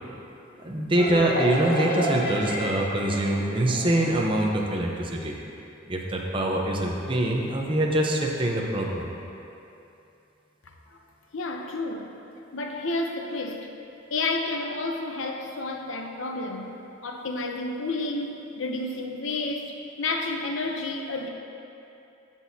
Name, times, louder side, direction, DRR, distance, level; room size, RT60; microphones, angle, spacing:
voice 1, 0.6-5.4 5.9-9.1, right 1 dB, 25° right, -1 dB, 0.8 m, -24 dB
sound 1, 1.0-4.5, equal, 45° left, 1.4 m, -30 dB
voice 2, 11.3-12.1 12.5-13.7 14.1-16.7 17.0-21.3, left 2 dB, 80° left, 3 dB, 0.8 m, -30 dB
15.5 x 6.2 x 2.8 m, 2.8 s
head